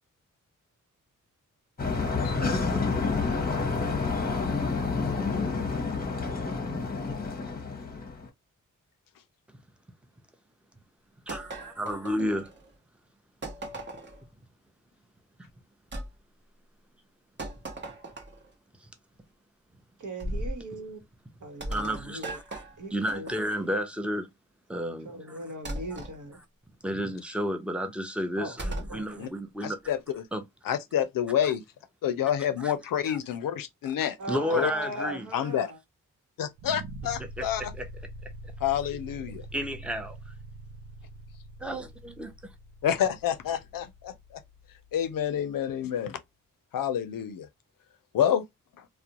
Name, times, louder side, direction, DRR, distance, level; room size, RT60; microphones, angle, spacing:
sound 1, 1.8-8.3, left 4 dB, 25° left, 0.8 m, -29 dB
voice 1, 11.3-12.5 21.7-22.6 22.9-24.3 24.7-25.4 26.8-29.9 30.3-30.4 31.4-31.5 32.6-32.7 33.0-33.2 34.3-35.3 37.4-37.9 38.2-38.3 39.5-40.3 41.6-42.3, equal, 5° right, 0.6 m, -32 dB
sound 2, 11.3-12.7 13.4-14.3 15.9-16.1 17.4-18.5 20.2-20.6 21.6-23.7 25.7-26.2 28.6-29.0, right 1 dB, 35° right, 0.8 m, -37 dB
voice 2, 20.0-21.0 21.4-22.4 22.8-23.3 25.0-26.4 28.4-29.3 34.2-35.8, right 1 dB, 65° right, 1.0 m, -39 dB
voice 3, 29.6-30.2 30.6-31.6 32.0-34.2 34.5-34.7 35.0-35.7 36.4-37.6 38.6-39.4 42.8-44.1 44.9-46.2 46.7-47.5 48.1-48.4, left 9 dB, 80° left, 0.5 m, -28 dB
sound 3, 36.6-45.6, right 1 dB, 85° right, 0.5 m, -45 dB
2.4 x 2.1 x 2.8 m
cardioid pair, 65°, 33 cm